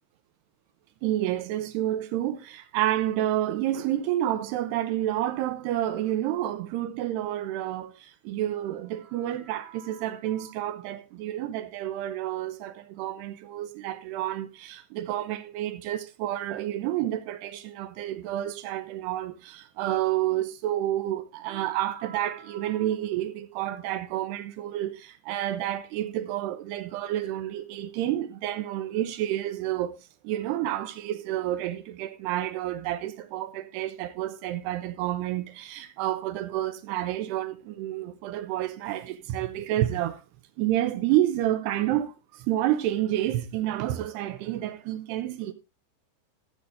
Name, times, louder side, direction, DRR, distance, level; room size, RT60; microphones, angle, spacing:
voice 1, 1.0-29.9 30.2-40.2 40.6-45.5, right 13 dB, 75° right, 2.7 m, -29 dB
15.5 x 8.0 x 3.4 m
omnidirectional pair, 5.3 m